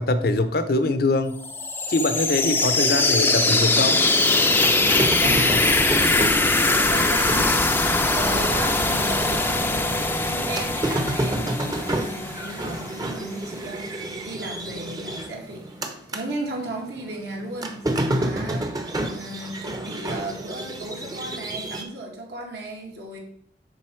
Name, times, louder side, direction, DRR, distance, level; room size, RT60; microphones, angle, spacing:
voice 1, 0.0-1.4 1.9-4.0, left 2 dB, 60° left, 10 dB, 0.7 m, -23 dB
sound 1, 1.4-13.1, left 2 dB, 10° left, 0.5 m, -22 dB
sound 2, 4.3-16.3 16.6-21.8, right 1 dB, 20° right, 0.8 m, -30 dB
voice 2, 4.6-13.9 14.2-15.6 16.1-23.2, right 2 dB, 70° right, -1 dB, 1.9 m, -35 dB
10.5 x 4.0 x 4.4 m, 0.68 s
head